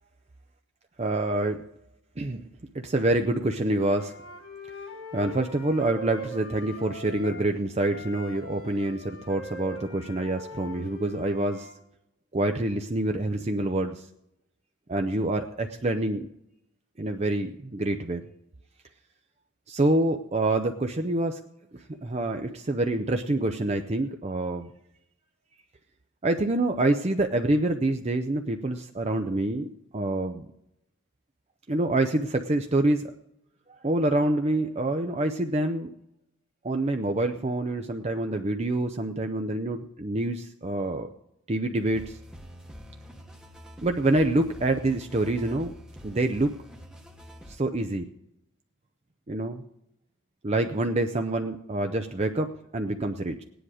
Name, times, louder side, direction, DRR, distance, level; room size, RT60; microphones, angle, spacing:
voice 1, 1.0-1.6 2.2-2.4 2.7-4.1 5.1-11.7 12.3-14.1 14.9-16.3 17.0-18.2 19.7-21.4 21.7-24.7 26.2-29.7 29.9-30.5 31.7-33.1 33.7-35.9 36.6-41.1 41.5-42.2 43.8-45.7 46.0-46.5 47.5-48.0 49.3-49.6 50.4-53.4, right 2 dB, 30° right, 5 dB, 0.6 m, -26 dB
Wind instrument woodwind instrument, 3.9-7.5 7.8-11.7, left 2 dB, 75° left, 2.9 m, -42 dB
sound 1, 41.9-47.6, equal, 5° right, 1.0 m, -46 dB
16.5 x 10.0 x 4.9 m, 0.81 s
head